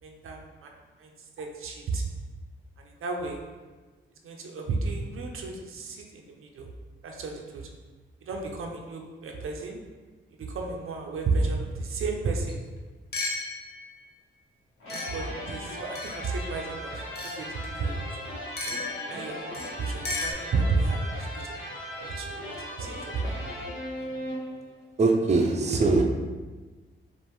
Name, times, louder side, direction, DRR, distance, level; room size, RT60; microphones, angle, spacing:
voice 1, 0.0-0.7 1.0-2.0 2.8-3.4 4.2-6.7 7.0-7.7 8.2-9.8 10.4-12.6 14.9-18.3 19.1-21.6 22.0-23.3, right 3 dB, 90° right, 1 dB, 0.6 m, -32 dB
sound 1, 12.5-12.6 13.1-14.0 14.9-16.4 17.2-17.5 18.6-20.3, left 2 dB, 50° left, 0.7 m, -35 dB
sound 2, 14.8-24.8, equal, 80° left, 1.2 m, -38 dB
voice 2, 25.0-26.0, right 3 dB, 35° right, 2 dB, 0.5 m, -22 dB
5.2 x 2.5 x 3.0 m, 1.3 s
wide cardioid pair, 100°, 21 cm